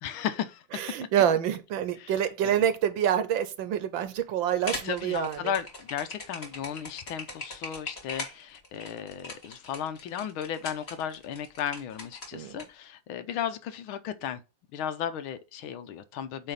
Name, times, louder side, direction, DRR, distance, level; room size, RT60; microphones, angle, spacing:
voice 1, 0.0-0.6 2.0-2.6 4.8-14.4 14.7-16.5, left 9 dB, 80° left, 1.6 m, -35 dB
voice 2, 0.7-5.4 12.3-12.6, right 9 dB, 70° right, 1.4 m, -27 dB
sound 1, 4.5-12.6, left 3 dB, 30° left, 2.1 m, -40 dB
8.7 x 3.3 x 5.2 m
omnidirectional pair, 2.3 m